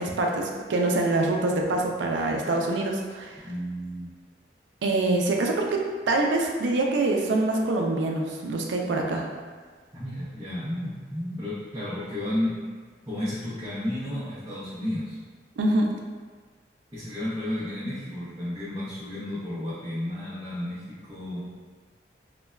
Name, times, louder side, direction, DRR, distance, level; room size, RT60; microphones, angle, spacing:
voice 1, 0.0-3.3 4.8-9.3 15.6-15.9, right 2 dB, 90° right, 1 dB, 0.4 m, -25 dB
voice 2, 3.4-4.1 9.9-12.7 13.1-15.2 16.9-21.5, left 1 dB, 20° right, -11 dB, 0.5 m, -32 dB
3.2 x 2.2 x 2.2 m, 1.5 s
head